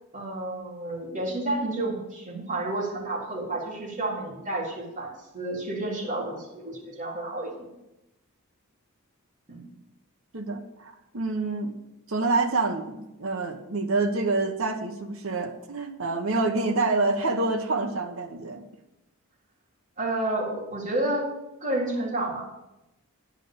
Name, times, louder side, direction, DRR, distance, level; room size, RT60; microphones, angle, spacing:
voice 1, 0.1-7.7 9.5-9.7 20.0-21.3 21.6-22.4, right 1 dB, 35° right, -6 dB, 3.9 m, -30 dB
voice 2, 10.3-11.7 12.1-18.6, right 3 dB, 60° right, 6 dB, 1.1 m, -27 dB
10.0 x 6.3 x 7.0 m, 0.95 s
head